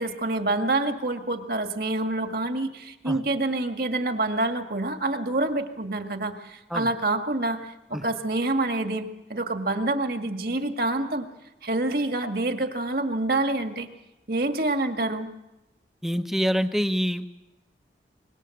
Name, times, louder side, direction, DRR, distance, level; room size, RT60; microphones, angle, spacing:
voice 1, 0.0-7.6 7.9-11.3 11.6-13.9 14.3-15.3, right 2 dB, 55° right, 6 dB, 1.9 m, -27 dB
voice 2, 16.0-17.3, equal, ahead, 9 dB, 0.9 m, -26 dB
24.5 x 21.5 x 7.8 m, 0.99 s
head